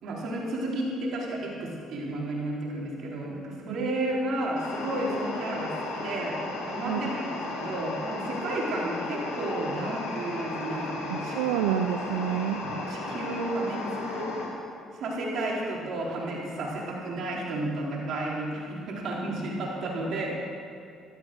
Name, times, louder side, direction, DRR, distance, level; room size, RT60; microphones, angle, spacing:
voice 1, 0.0-11.3 12.6-14.3 14.9-20.3, right 1 dB, 65° right, -3 dB, 4.3 m, -32 dB
sound 1, 4.6-14.5, left 2 dB, 80° left, 2.7 m, -35 dB
voice 2, 11.1-12.6, right 10 dB, 90° right, 6 dB, 0.6 m, -28 dB
13.0 x 13.0 x 6.4 m, 2.4 s
supercardioid pair, 65°, 0 cm